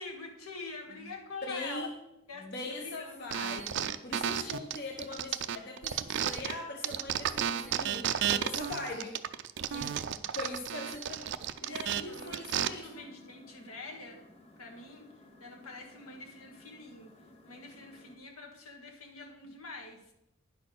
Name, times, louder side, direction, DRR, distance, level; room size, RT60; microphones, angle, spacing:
voice 1, 0.0-1.9 2.3-3.3 4.1-4.5 10.2-10.4 11.7-14.2 14.6-15.1 15.4-17.1 17.4-20.1, left 3 dB, 75° left, 1 dB, 1.6 m, -46 dB
voice 2, 1.4-1.9 2.4-9.2 9.7-9.9 10.3-11.3 11.6-13.1, left 2 dB, 50° left, 1 dB, 0.9 m, -41 dB
sound 1, 3.3-6.5 6.8-12.7, right 9 dB, 55° right, 0.4 m, -33 dB
sound 2, 11.6-18.2, left 1 dB, 30° left, 1.0 m, -58 dB
10.0 x 4.3 x 6.3 m, 0.88 s
head